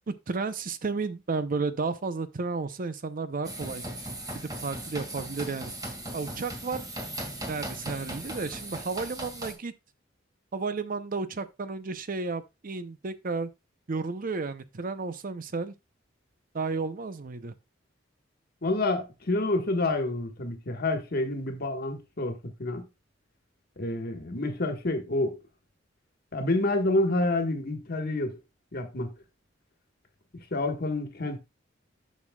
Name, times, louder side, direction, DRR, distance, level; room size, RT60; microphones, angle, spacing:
voice 1, 0.0-3.8 4.3-5.7 6.1-6.9 7.5-9.7 10.5-13.5 13.9-15.7 16.5-17.5, right 4 dB, 45° right, 0.6 m, -32 dB
sound 1, 3.4-9.5, right 1 dB, 20° right, 1.9 m, -38 dB
voice 2, 18.6-22.8 23.8-25.4 26.3-28.4 28.7-29.1 30.3-31.4, left 2 dB, 55° left, 1.4 m, -28 dB
11.0 x 6.3 x 2.3 m
head